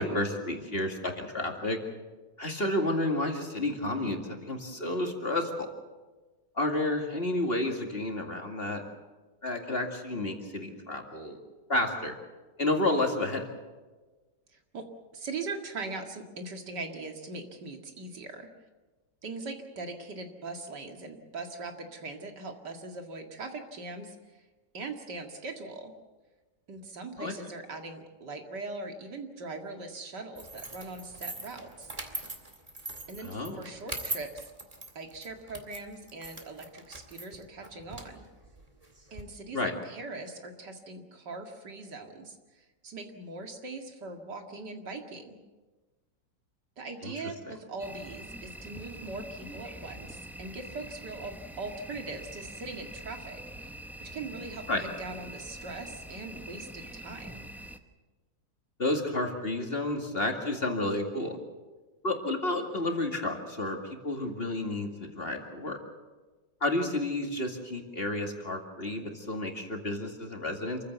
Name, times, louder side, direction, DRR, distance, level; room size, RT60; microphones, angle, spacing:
voice 1, 0.0-1.8 2.4-5.7 6.6-8.8 9.4-11.4 11.7-12.1 12.6-13.5 27.2-27.3 33.2-33.6 39.5-39.7 47.0-47.1 47.4-47.5 54.7-54.8 58.8-61.4 62.0-65.8 66.6-70.8, left 1 dB, 35° left, 3 dB, 2.4 m, -31 dB
voice 2, 14.5-14.9 15.1-18.5 19.2-24.4 24.7-25.9 26.7-31.9 33.1-34.5 34.9-38.2 39.1-45.4 46.8-57.4, right 3 dB, 70° right, 4 dB, 2.7 m, -41 dB
sound 1, 30.3-39.2, right 2 dB, 20° right, 2.2 m, -42 dB
sound 2, 47.8-57.8, right 1 dB, ahead, 0.7 m, -44 dB
27.0 x 15.5 x 8.1 m, 1.3 s
omnidirectional pair, 1.9 m